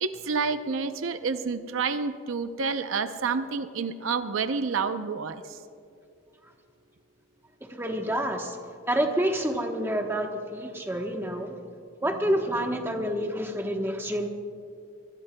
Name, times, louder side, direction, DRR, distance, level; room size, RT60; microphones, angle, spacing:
voice 1, 0.0-5.6, right 5 dB, 70° right, 9 dB, 0.6 m, -29 dB
voice 2, 7.6-11.6 12.0-14.3, right 1 dB, 10° right, 3 dB, 1.0 m, -28 dB
24.5 x 20.5 x 2.2 m, 2.4 s
head